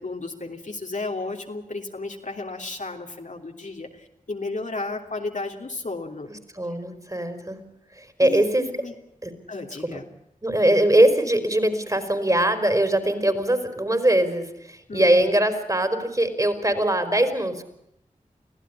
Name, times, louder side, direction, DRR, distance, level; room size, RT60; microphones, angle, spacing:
voice 1, 0.0-6.3 6.7-6.8 8.2-8.9 9.5-10.0 14.9-15.3, left 3 dB, 60° left, 2 dB, 3.1 m, -33 dB
voice 2, 6.5-7.6 8.0-8.7 9.2-9.3 10.4-17.6, right 1 dB, 25° right, 9 dB, 4.4 m, -21 dB
24.5 x 15.5 x 9.9 m, 0.80 s
cardioid pair, 40°, 14 cm